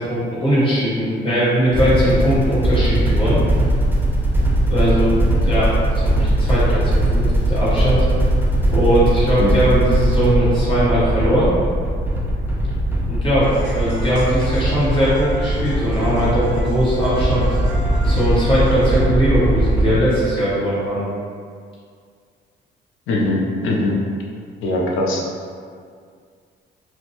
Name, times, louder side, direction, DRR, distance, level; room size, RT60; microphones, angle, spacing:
voice 1, 0.0-3.4 4.7-8.0 8.7-11.5 13.1-13.5 13.7-17.4 18.0-21.0, equal, 25° left, -10 dB, 1.2 m, -19 dB
sound 1, 1.7-20.0, right 1 dB, 10° right, 0.4 m, -19 dB
sound 2, 13.4-19.0, right 1 dB, 60° left, 1.1 m, -34 dB
voice 2, 23.1-23.9 24.6-25.2, left 2 dB, 85° left, -2 dB, 0.5 m, -21 dB
2.5 x 2.2 x 2.9 m, 2.1 s
cardioid pair, 90°, 20 cm